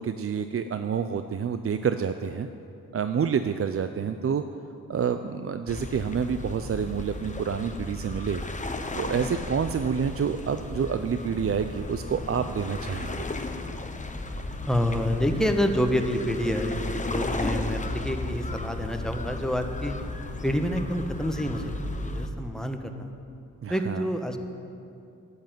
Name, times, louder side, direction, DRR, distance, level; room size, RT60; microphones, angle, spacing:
voice 1, 0.0-2.5 2.9-4.4 4.9-8.4 8.9-13.2 23.6-24.1, right 7 dB, 40° right, 9 dB, 0.6 m, -28 dB
sound 1, 5.7-22.3, left 2 dB, 20° left, 1.0 m, -34 dB
voice 2, 14.7-19.9 20.4-21.7 22.0-23.1 23.7-24.4, equal, ahead, 5 dB, 1.3 m, -27 dB
11.0 x 8.1 x 9.0 m, 2.6 s
cardioid pair, 60°, 35 cm